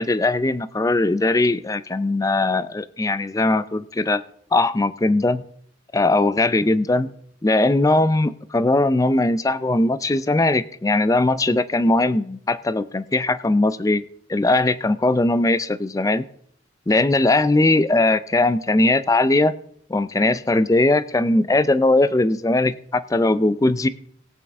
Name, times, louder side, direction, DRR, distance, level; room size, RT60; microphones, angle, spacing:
voice 1, 0.0-4.2 4.5-5.4 5.9-7.1 7.4-14.0 14.3-16.3 16.9-19.5 19.9-23.9, left 2 dB, 15° left, 15 dB, 0.4 m, -19 dB
18.0 x 8.5 x 3.6 m, 0.63 s
head